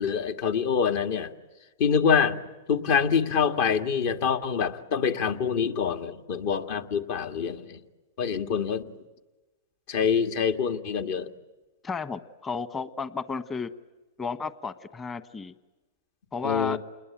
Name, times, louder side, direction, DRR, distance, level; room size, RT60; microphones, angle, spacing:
voice 1, 0.0-1.3 1.8-2.4 2.7-7.8 8.2-8.8 9.9-11.3 16.4-16.8, left 6 dB, 55° left, 8 dB, 2.0 m, -25 dB
voice 2, 11.8-13.7 14.2-15.5 16.3-16.8, left 5 dB, 15° left, 13 dB, 1.2 m, -33 dB
29.0 x 21.0 x 9.2 m, 1.1 s
hypercardioid pair, 135°, 0 cm